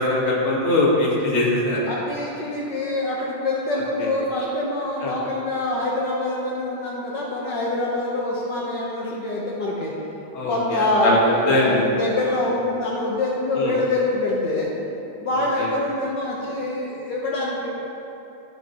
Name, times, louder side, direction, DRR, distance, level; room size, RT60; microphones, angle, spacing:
voice 1, 0.0-1.8 5.0-5.1 10.3-11.2 11.5-11.8 13.5-13.7 15.6-15.7, left 2 dB, 40° left, -4 dB, 1.0 m, -21 dB
voice 2, 1.9-9.9 10.5-14.7 15.2-17.7, left 1 dB, 90° left, -4 dB, 0.9 m, -25 dB
17.5 x 6.3 x 3.0 m, 2.9 s
omnidirectional pair, 3.6 m